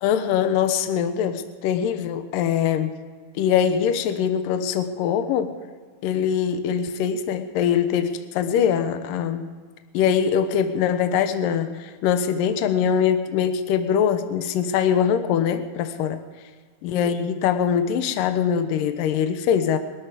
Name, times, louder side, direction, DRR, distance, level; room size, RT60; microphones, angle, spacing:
voice 1, 0.0-2.9 3.4-5.5 6.0-9.5 9.9-16.2 16.8-19.8, left 8 dB, 70° left, 9 dB, 2.4 m, -22 dB
22.5 x 13.0 x 5.0 m, 1.5 s
omnidirectional pair, 4.6 m